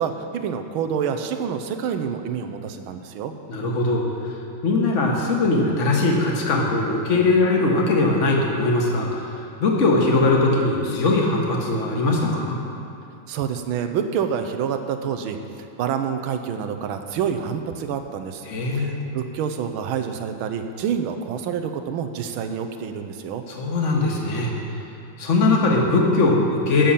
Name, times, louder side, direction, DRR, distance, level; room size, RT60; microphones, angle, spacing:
voice 1, 0.0-3.3 13.3-15.4 15.8-18.5 18.7-23.4, right 7 dB, 85° right, 7 dB, 1.6 m, -27 dB
voice 2, 3.5-4.3 4.6-12.6 18.5-19.1 23.5-24.5 25.2-26.9, left 2 dB, 40° left, -1 dB, 1.6 m, -20 dB
15.0 x 7.0 x 5.7 m, 2.6 s
omnidirectional pair, 2.2 m